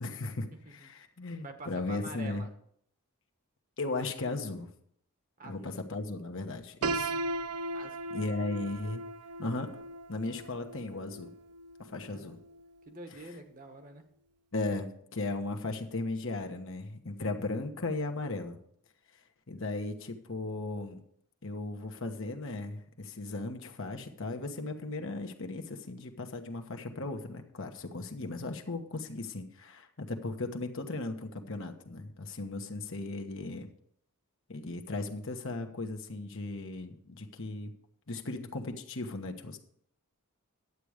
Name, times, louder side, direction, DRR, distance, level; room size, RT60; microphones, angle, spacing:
voice 1, 0.0-2.4 3.8-4.7 5.4-7.2 8.1-9.0 9.4-9.7 10.1-11.3 11.8-12.4 14.5-18.6 19.5-21.0 21.4-33.7 34.5-37.7 38.1-39.6, left 2 dB, 60° left, 4 dB, 1.3 m, -36 dB
voice 2, 1.4-2.5 5.4-5.8 7.7-8.3 12.1-12.3 12.9-14.1, right 2 dB, 40° right, 6 dB, 1.3 m, -47 dB
Piano, 6.8-12.7, right 2 dB, 80° right, 0.5 m, -37 dB
11.0 x 8.6 x 5.0 m, 0.66 s
head